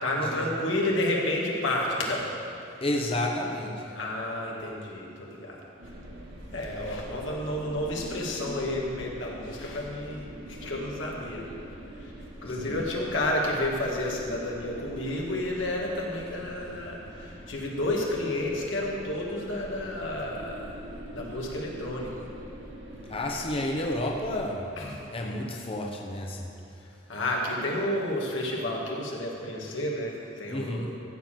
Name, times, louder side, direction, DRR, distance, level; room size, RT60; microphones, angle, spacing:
voice 1, 0.0-2.2 3.9-5.6 6.5-11.4 12.0-12.1 12.4-20.7 21.1-22.1 24.8-25.0 27.1-31.0, left 1 dB, 90° left, -2 dB, 2.1 m, -31 dB
voice 2, 2.8-4.0 12.6-12.8 23.1-24.7 25.1-26.5 30.5-30.9, left 1 dB, 30° left, 0 dB, 0.8 m, -31 dB
sound 1, 5.8-24.4, right 1 dB, 70° right, 1.8 m, -44 dB
14.5 x 5.2 x 7.6 m, 2.8 s
head